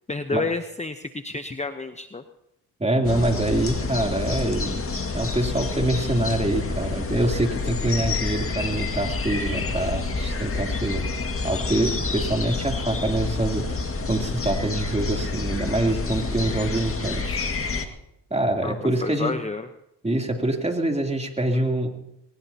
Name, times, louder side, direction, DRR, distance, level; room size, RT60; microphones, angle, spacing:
voice 1, 0.1-2.2 18.6-19.7, left 3 dB, 15° left, 8 dB, 0.9 m, -30 dB
voice 2, 2.8-4.8 5.1-13.8 14.1-17.4 18.3-19.3 20.0-21.9, right 1 dB, 15° right, 2 dB, 3.3 m, -25 dB
sound 1, 3.0-17.9, left 3 dB, 30° left, 1.9 m, -28 dB
21.5 x 20.0 x 2.9 m, 0.85 s
supercardioid pair, 65°, 41 cm